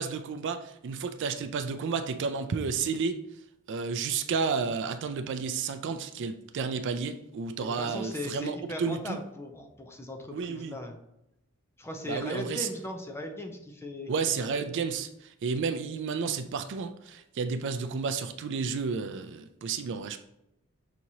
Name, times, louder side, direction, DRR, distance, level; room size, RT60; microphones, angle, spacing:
voice 1, 0.0-3.1 3.7-9.2 10.3-10.8 12.1-12.7 14.1-20.2, right 5 dB, 55° right, 8 dB, 0.4 m, -31 dB
voice 2, 7.6-11.0 11.8-14.1 14.4-14.5, left 1 dB, 10° left, 4 dB, 0.5 m, -38 dB
6.0 x 2.9 x 2.7 m, 0.83 s
head